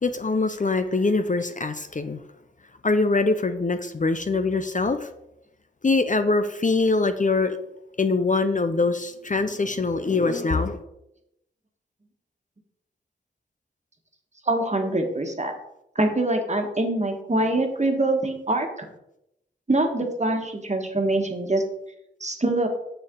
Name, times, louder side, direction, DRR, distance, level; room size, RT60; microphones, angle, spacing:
voice 1, 0.0-2.2 2.8-5.1 5.8-7.6 8.0-10.8, left 3 dB, 40° left, 9 dB, 0.6 m, -23 dB
voice 2, 14.4-15.5 15.9-18.9 19.7-21.6 22.2-22.7, right 2 dB, 35° right, 3 dB, 1.5 m, -24 dB
6.8 x 6.8 x 3.8 m, 0.83 s
cardioid pair, 50°, 21 cm